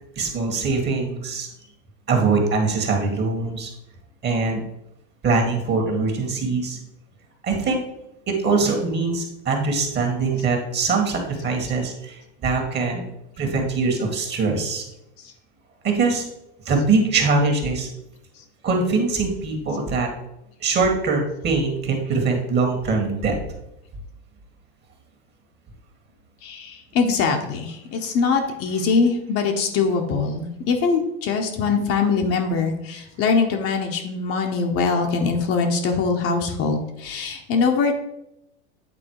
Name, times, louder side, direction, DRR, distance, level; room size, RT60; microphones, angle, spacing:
voice 1, 0.2-1.5 2.1-3.7 4.2-4.6 5.2-6.8 7.4-7.8 8.3-13.0 13.4-14.8 15.8-16.2 16.6-17.9 18.6-20.1 20.6-23.4, right 4 dB, 30° right, 3 dB, 1.8 m, -22 dB
voice 2, 26.4-38.0, left 4 dB, 40° left, 3 dB, 1.1 m, -22 dB
8.9 x 3.9 x 4.8 m, 0.86 s
hypercardioid pair, 115°, 34 cm